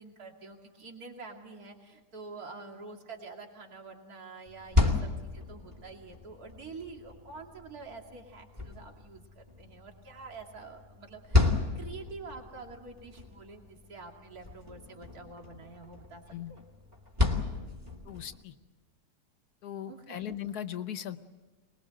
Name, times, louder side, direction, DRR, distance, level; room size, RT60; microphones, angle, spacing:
voice 1, 0.0-11.5 11.7-16.2 16.5-16.7 19.9-20.4, right 4 dB, 65° right, 2 dB, 3.0 m, -47 dB
sound 1, 4.5-18.4, left 3 dB, 25° right, 2.5 m, -33 dB
voice 2, 18.0-18.5 19.6-21.2, left 10 dB, 75° left, 11 dB, 1.5 m, -38 dB
25.0 x 21.0 x 7.8 m, 1.3 s
omnidirectional pair, 1.7 m